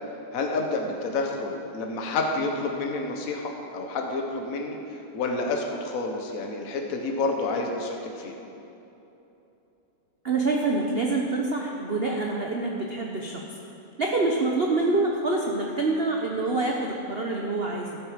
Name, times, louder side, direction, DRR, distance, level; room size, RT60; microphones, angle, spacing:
voice 1, 0.3-8.3, left 3 dB, 45° left, 2 dB, 1.4 m, -29 dB
voice 2, 10.2-13.4 14.0-18.0, right 3 dB, 70° right, 0 dB, 0.5 m, -26 dB
13.5 x 8.4 x 5.1 m, 2.9 s
omnidirectional pair, 2.4 m